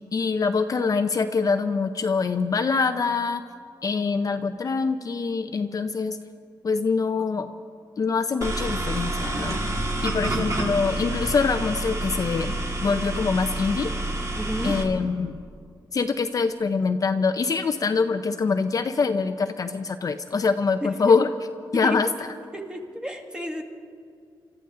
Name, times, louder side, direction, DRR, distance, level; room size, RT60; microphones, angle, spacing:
voice 1, 0.1-3.4 3.8-6.2 6.6-7.5 8.0-9.6 10.0-12.5 12.8-13.9 14.6-15.4 15.9-21.3 21.7-22.1, left 4 dB, 45° left, 8 dB, 0.6 m, -24 dB
sound 1, 8.4-14.8, right 1 dB, 40° right, 2.2 m, -28 dB
voice 2, 14.3-14.8 20.8-21.2 21.8-22.1 22.5-23.6, equal, 10° right, 3 dB, 1.6 m, -32 dB
28.0 x 13.5 x 3.7 m, 2.2 s
wide cardioid pair, 125°, 8 cm